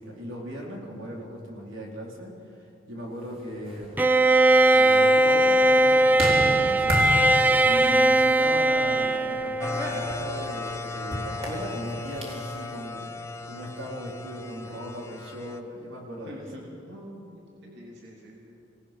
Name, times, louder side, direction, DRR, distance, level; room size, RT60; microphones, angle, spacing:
voice 1, 0.0-3.9 4.7-7.1 7.6-16.4, equal, 85° right, -2 dB, 4.1 m, -38 dB
sound 1, 3.5-12.6, equal, 30° right, 3.9 m, -34 dB
Bowed string instrument, 4.0-10.0, right 2 dB, 10° right, 0.6 m, -20 dB
sound 2, 9.6-15.6, left 3 dB, 15° left, 1.0 m, -36 dB
voice 2, 16.2-18.7, equal, 60° right, -3 dB, 3.0 m, -45 dB
26.0 x 18.5 x 6.0 m, 2.7 s
head